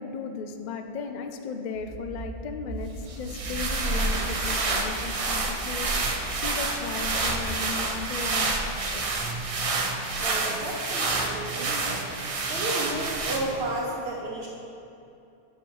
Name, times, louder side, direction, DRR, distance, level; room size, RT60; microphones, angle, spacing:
voice 1, 0.0-5.9 6.4-9.0, left 5 dB, 55° left, 6 dB, 0.5 m, -36 dB
Accelerating revving vroom, 1.7-9.0, right 3 dB, 80° right, 1.3 m, -42 dB
sound 1, 3.1-13.7, right 3 dB, 40° right, 0.5 m, -28 dB
voice 2, 10.2-12.1 12.5-14.5, right 1 dB, 60° right, -4 dB, 1.0 m, -32 dB
10.5 x 4.3 x 4.6 m, 2.7 s
omnidirectional pair, 1.2 m